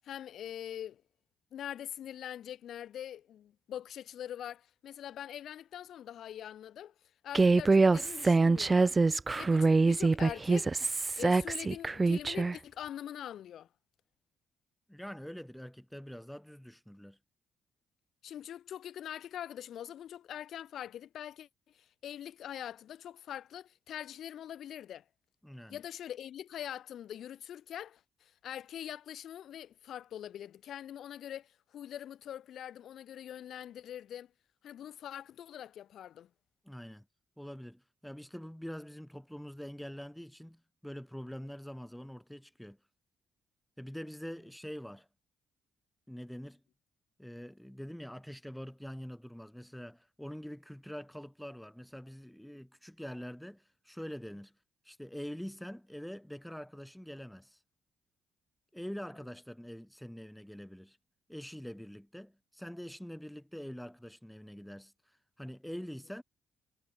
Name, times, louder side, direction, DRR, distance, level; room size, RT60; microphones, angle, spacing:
voice 1, 0.0-1.0 1.5-6.9 7.2-8.9 9.4-10.7 11.2-13.7 18.2-25.0 25.7-34.3 34.6-36.3, left 10 dB, 70° left, 5.5 m, -43 dB
Human voice, 7.3-12.6, right 3 dB, 25° right, 0.4 m, -25 dB
voice 2, 14.9-17.2 25.4-25.8 36.6-37.0 37.4-42.8 43.8-45.1 46.1-46.6 47.2-54.5 54.8-57.6 58.7-61.0 61.3-64.9 65.4-66.2, equal, 5° left, 2.8 m, -45 dB
cardioid pair, 90°, 0 cm